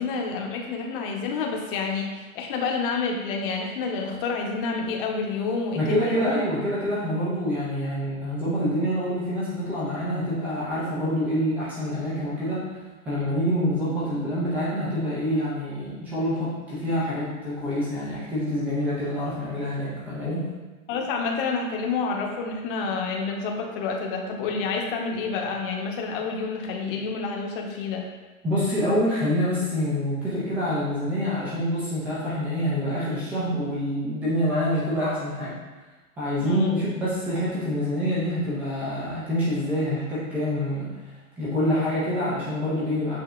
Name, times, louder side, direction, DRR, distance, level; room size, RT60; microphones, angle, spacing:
voice 1, 0.0-6.4 20.9-28.0 36.4-36.7, left 4 dB, 40° left, 1 dB, 0.9 m, -28 dB
voice 2, 5.7-12.7 13.1-20.5 28.4-35.6 36.2-40.9 41.4-43.2, equal, 5° right, -8 dB, 0.3 m, -26 dB
7.8 x 2.8 x 2.4 m, 1.2 s
hypercardioid pair, 130°, 42 cm